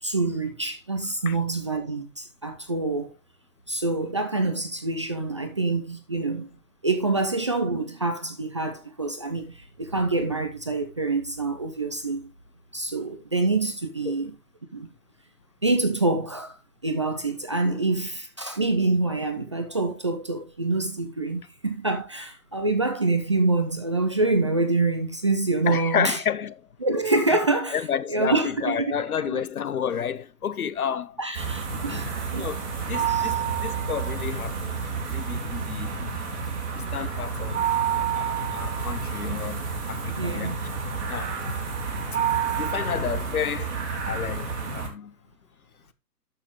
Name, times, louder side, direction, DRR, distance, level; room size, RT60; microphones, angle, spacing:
voice 1, 0.0-3.1 3.7-6.6 6.8-12.3 12.7-14.3 14.7-14.9 15.6-16.6 16.8-26.2 26.8-27.8 28.1-28.8 31.2-32.5 33.1-33.3 40.2-40.7, right 3 dB, 20° right, 0.5 m, -26 dB
voice 2, 25.7-26.5 27.3-27.4 27.7-31.2 31.7-32.0 32.3-34.8 35.1-36.3 36.7-40.6 41.1-41.4 42.6-45.1, left 8 dB, 65° left, 0.9 m, -31 dB
sound 1, 31.3-44.9, right 6 dB, 45° right, 3.8 m, -29 dB
12.0 x 6.6 x 3.1 m
hypercardioid pair, 150°, 46 cm